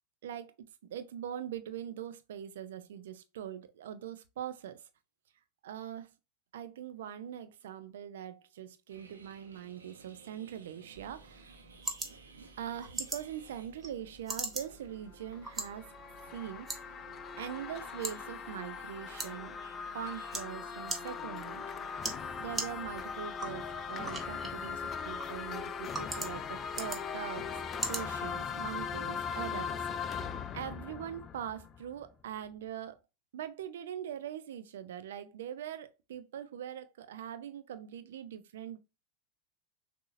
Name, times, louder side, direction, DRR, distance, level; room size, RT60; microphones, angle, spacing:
voice 1, 0.2-4.9 5.6-6.1 6.5-11.6 12.6-15.9 16.3-16.9 17.4-19.6 19.9-22.0 22.4-27.6 27.9-30.2 30.5-33.0 33.3-38.8, right 10 dB, 75° right, 0.6 m, -42 dB
sound 1, 8.9-22.3, right 4 dB, 90° right, 1.0 m, -57 dB
sound 2, 10.9-28.9, right 2 dB, 15° right, 1.2 m, -43 dB
sound 3, 15.1-32.1, left 6 dB, 35° left, 0.5 m, -40 dB
6.3 x 2.8 x 2.6 m
hypercardioid pair, 90°, 0 cm